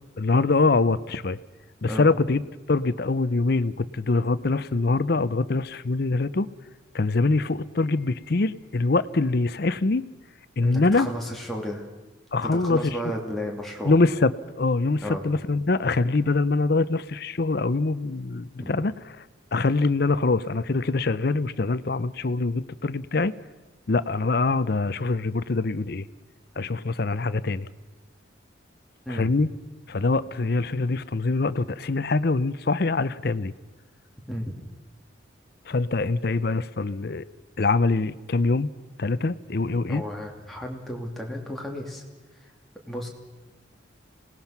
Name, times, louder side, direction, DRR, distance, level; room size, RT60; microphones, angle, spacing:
voice 1, 0.2-1.4 1.8-2.4 2.7-6.5 6.9-10.0 10.6-11.1 12.3-13.0 13.8-18.9 19.5-23.3 23.9-26.1 26.6-27.7 29.1-29.5 29.9-33.5 35.7-37.3 37.6-38.7 39.0-40.0, left 3 dB, 55° left, 16 dB, 0.6 m, -24 dB
voice 2, 10.6-11.8 12.4-14.0 15.0-15.3 18.6-18.7 29.1-29.3 34.3-34.5 39.9-42.0 42.9-43.1, equal, ahead, -1 dB, 2.7 m, -33 dB
26.5 x 18.5 x 5.9 m, 1.1 s
head